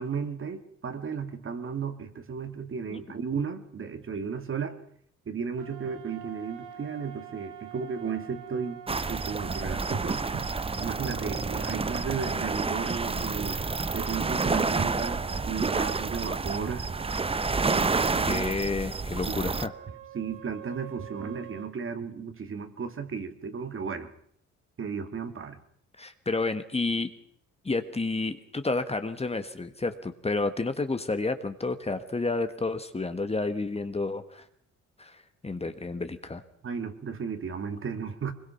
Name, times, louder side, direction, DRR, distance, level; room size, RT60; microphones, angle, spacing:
voice 1, 0.0-4.8 5.3-10.5 10.8-13.6 13.9-16.9 17.6-18.5 19.3-19.6 20.1-24.1 24.8-25.6 36.6-38.3, right 6 dB, 45° right, 8 dB, 2.3 m, -34 dB
sound 1, 5.6-11.8 13.3-17.6 19.5-21.7, right 9 dB, 80° right, 2.2 m, -46 dB
sound 2, 8.9-19.7, right 4 dB, 20° right, 0.8 m, -29 dB
voice 2, 18.2-19.7 26.0-27.1 27.6-34.4 35.0-36.4, left 3 dB, 20° left, 9 dB, 1.5 m, -30 dB
23.0 x 21.5 x 5.8 m, 0.65 s
cardioid pair, 90°, 30 cm